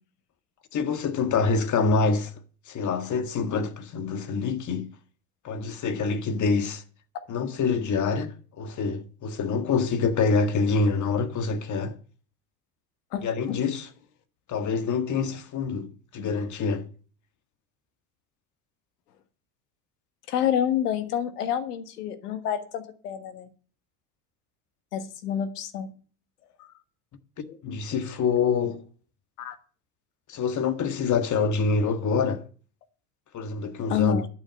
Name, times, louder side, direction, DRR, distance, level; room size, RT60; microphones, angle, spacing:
voice 1, 0.7-2.3 2.7-4.9 5.4-6.8 7.3-12.0 13.2-13.9 14.5-16.9 27.6-28.8 30.3-32.4 33.3-34.2, left 4 dB, 40° left, 1.6 m, -26 dB
voice 2, 20.3-23.5 24.9-26.0 26.6-26.7 27.5-27.6 29.4-29.6 33.9-34.3, left 10 dB, 85° left, 1.6 m, -28 dB
11.5 x 6.2 x 9.1 m
hypercardioid pair, 85°, 45 cm